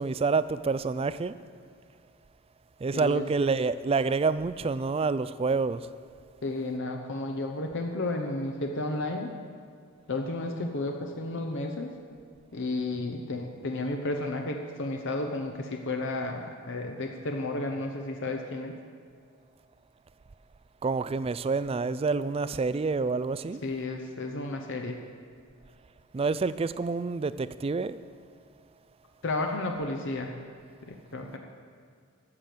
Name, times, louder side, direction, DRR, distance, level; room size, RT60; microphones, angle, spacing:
voice 1, 0.0-1.3 2.8-5.9 20.8-23.6 26.1-28.0, right 4 dB, 25° right, 15 dB, 0.3 m, -28 dB
voice 2, 6.4-9.3 10.1-11.9 12.5-18.8 23.6-25.0 29.2-30.3 30.8-31.4, left 2 dB, 60° left, 3 dB, 0.8 m, -32 dB
13.5 x 7.7 x 6.7 m, 2.2 s
head